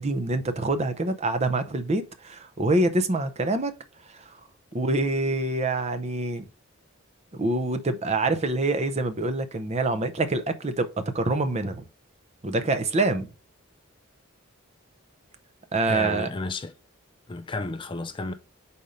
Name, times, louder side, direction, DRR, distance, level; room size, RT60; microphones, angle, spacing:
voice 1, 0.0-3.7 4.1-4.4 4.7-6.5 7.3-10.9 11.1-11.8 12.4-13.3 15.7-16.3, right 2 dB, 30° right, 0.6 m, -26 dB
voice 2, 15.8-16.7 17.3-18.3, left 3 dB, 25° left, 0.4 m, -32 dB
5.2 x 4.2 x 5.0 m
head